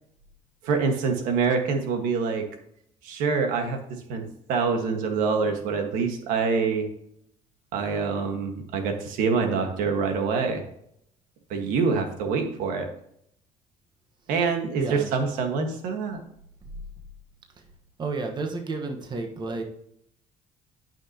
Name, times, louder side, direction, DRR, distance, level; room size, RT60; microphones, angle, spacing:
voice 1, 0.6-2.4 3.0-6.9 7.7-10.6 11.5-12.9 14.3-16.2, right 5 dB, 85° right, 4 dB, 1.5 m, -26 dB
voice 2, 14.7-15.1 18.0-19.6, right 3 dB, 35° right, 4 dB, 1.3 m, -31 dB
12.0 x 5.9 x 2.9 m, 0.70 s
cardioid pair, 120°, 14 cm